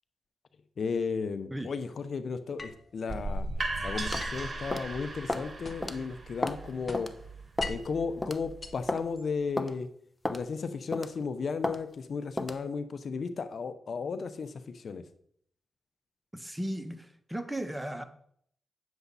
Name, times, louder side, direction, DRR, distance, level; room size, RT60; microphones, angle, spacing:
voice 1, 0.8-3.5 3.8-7.1 7.7-9.9 10.3-15.0, left 5 dB, 65° left, 0.8 m, -34 dB
sound 1, 2.6-3.3 4.2-6.1 6.4-8.0 8.4-9.5, left 3 dB, 40° left, 1.3 m, -43 dB
sound 2, 3.1-8.9, right 2 dB, 35° right, 1.7 m, -37 dB
sound 3, 4.1-4.3 4.7-4.9 5.3-5.5 5.8-6.0 6.4-6.6 6.9-7.1 7.6-7.8 8.2-8.4 8.9-9.0 9.6-9.7 10.2-10.4 10.9-11.2 11.6-11.8 12.4-12.6, left 2 dB, 25° left, 0.9 m, -32 dB
voice 2, 16.3-18.0, right 1 dB, 10° right, 1.1 m, -36 dB
9.4 x 7.1 x 4.1 m
supercardioid pair, 45°, 0 cm